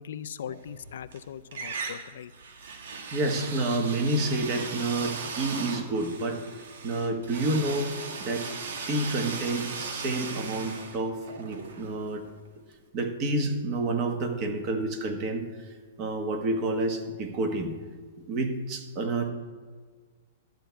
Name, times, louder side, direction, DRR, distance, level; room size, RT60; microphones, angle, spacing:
voice 1, 0.0-2.3, left 9 dB, 70° left, 13 dB, 0.4 m, -40 dB
sound 1, 0.6-1.2 1.5-12.4, right 4 dB, 70° right, 1.6 m, -38 dB
voice 2, 3.1-6.4 6.8-7.9 8.2-8.4 8.9-12.2 12.9-15.4 16.0-17.7 18.3-19.3, right 2 dB, 30° right, 5 dB, 1.3 m, -29 dB
12.0 x 4.6 x 8.3 m, 1.5 s
hypercardioid pair, 165°, 0 cm